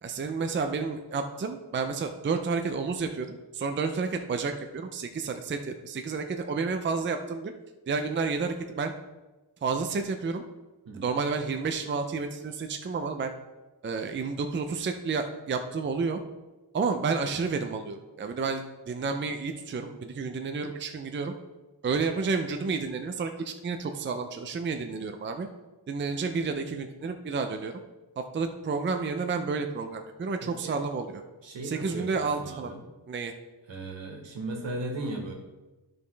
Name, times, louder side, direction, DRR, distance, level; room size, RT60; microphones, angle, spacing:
voice 1, 0.0-7.5 7.9-8.9 9.6-10.4 10.9-13.3 13.8-16.2 16.7-21.3 21.8-25.5 25.9-27.7 28.2-31.2 31.6-32.7 33.1-33.3, right 4 dB, 25° right, 6 dB, 0.5 m, -30 dB
voice 2, 30.4-30.8 31.4-32.8 33.7-35.3, right 2 dB, 80° right, 1 dB, 1.8 m, -37 dB
13.0 x 5.2 x 3.3 m, 1.1 s
wide cardioid pair, 150°, 44 cm